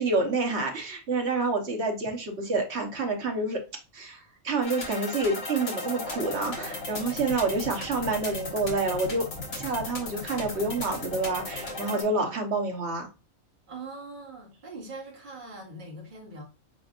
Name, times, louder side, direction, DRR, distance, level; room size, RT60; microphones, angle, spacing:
voice 1, 0.0-3.6 3.9-9.3 9.5-13.1, right 3 dB, 55° right, 1.3 m, -28 dB
sound 1, 4.6-12.0, left 2 dB, 65° left, 1.8 m, -36 dB
voice 2, 13.7-16.4, right 2 dB, 40° right, 1.5 m, -42 dB
4.6 x 4.4 x 2.4 m
omnidirectional pair, 1.3 m